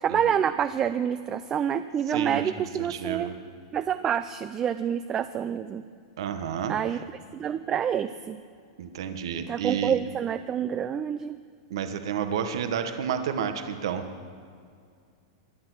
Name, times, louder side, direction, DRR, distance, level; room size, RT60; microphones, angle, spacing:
voice 1, 0.0-3.3 3.7-5.9 6.7-7.0 7.3-8.4 9.5-11.4, right 8 dB, 20° right, 12 dB, 0.4 m, -27 dB
voice 2, 2.1-2.5 2.8-3.3 6.2-7.0 8.8-10.0 11.7-14.0, right 8 dB, 75° right, 8 dB, 1.1 m, -30 dB
23.0 x 10.0 x 6.2 m, 2.3 s
supercardioid pair, 155°, 3 cm